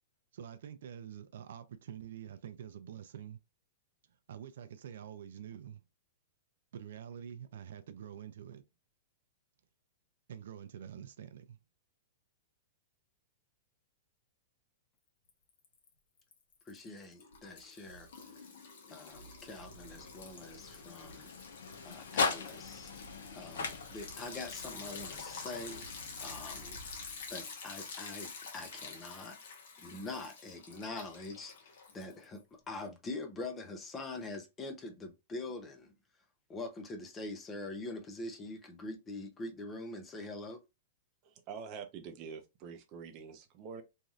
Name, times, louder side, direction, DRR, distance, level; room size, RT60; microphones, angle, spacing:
voice 1, 0.3-3.4 4.3-5.8 6.7-8.6 10.3-11.6, right 9 dB, 70° right, 0.4 m, -47 dB
Liquid, 15.3-15.9 16.2-32.4, left 4 dB, 65° left, 1.1 m, -48 dB
voice 2, 16.7-18.1 18.9-21.3 21.8-22.9 23.3-25.9 26.2-26.8 27.3-29.4 29.8-35.9 36.5-40.6, left 2 dB, 15° left, 0.6 m, -44 dB
sound 1, 19.2-27.4, left 4 dB, 85° left, 0.8 m, -40 dB
voice 3, 41.2-43.8, right 6 dB, 30° right, 0.6 m, -46 dB
3.1 x 2.6 x 2.3 m
supercardioid pair, 165°, 0 cm